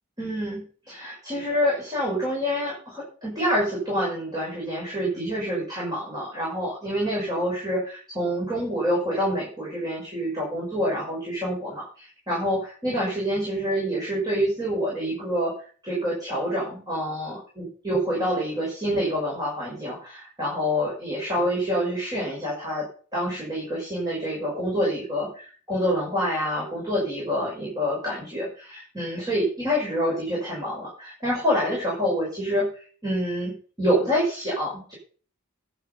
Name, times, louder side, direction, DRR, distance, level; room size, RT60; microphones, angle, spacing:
voice 1, 0.2-15.5 15.8-34.9, equal, 15° right, -5 dB, 6.1 m, -27 dB
11.5 x 8.0 x 7.2 m, 0.42 s
head